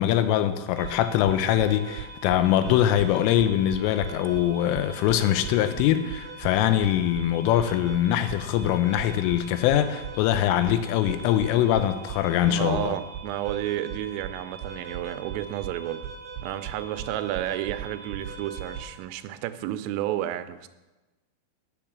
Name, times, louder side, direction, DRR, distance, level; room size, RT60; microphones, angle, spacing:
voice 1, 0.0-13.0, left 11 dB, 85° left, 3.3 m, -23 dB
sound 1, 0.8-18.8, right 6 dB, 65° right, 2.8 m, -39 dB
voice 2, 12.5-16.1 16.4-20.7, right 13 dB, 85° right, 3.2 m, -31 dB
9.4 x 7.5 x 7.1 m
omnidirectional pair, 5.7 m